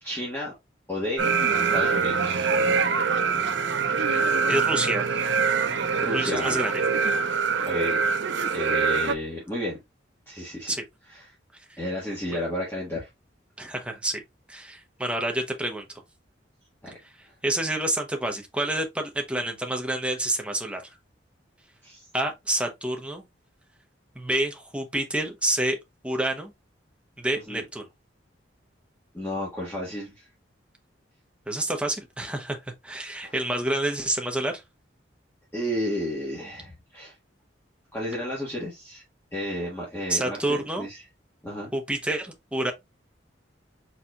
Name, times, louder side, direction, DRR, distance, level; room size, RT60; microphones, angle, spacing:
voice 1, 0.0-0.5 0.9-1.2 1.7-2.5 5.6-6.6 7.6-8.0 8.5-9.8 10.3-10.7 11.1-11.2 11.8-13.1 16.8-17.0 17.3-17.4 21.8-22.1 27.5-27.6 29.1-30.3 33.2-33.3 35.5-37.1 37.9-39.0 39.3-41.0 41.4-41.7, left 1 dB, 10° left, 1.5 m, -32 dB
sound 1, 1.2-9.1, right 5 dB, 70° right, 0.6 m, -24 dB
voice 2, 4.5-5.2 6.1-6.8 10.7-10.8 13.6-14.2 14.5-15.9 17.4-20.8 22.1-23.2 24.1-25.8 26.0-26.5 27.2-27.9 31.5-32.6 32.8-34.5 40.1-40.9 41.7-42.7, right 1 dB, 5° right, 0.8 m, -28 dB
4.4 x 4.1 x 2.4 m
head